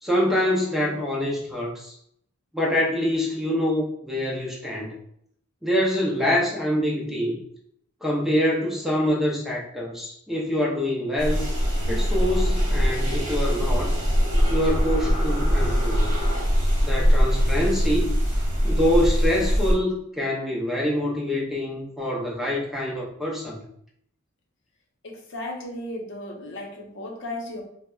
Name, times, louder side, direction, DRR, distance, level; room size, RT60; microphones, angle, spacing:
voice 1, 0.0-1.9 2.5-4.9 5.6-7.4 8.0-11.5 11.9-13.9 14.5-16.1 16.8-18.1 18.6-23.6, left 1 dB, ahead, -3 dB, 0.5 m, -25 dB
sound 1, 11.2-19.7, equal, 35° right, 1.1 m, -22 dB
voice 2, 25.0-27.6, left 1 dB, 60° left, 0 dB, 0.7 m, -35 dB
4.4 x 2.1 x 2.2 m, 0.69 s
head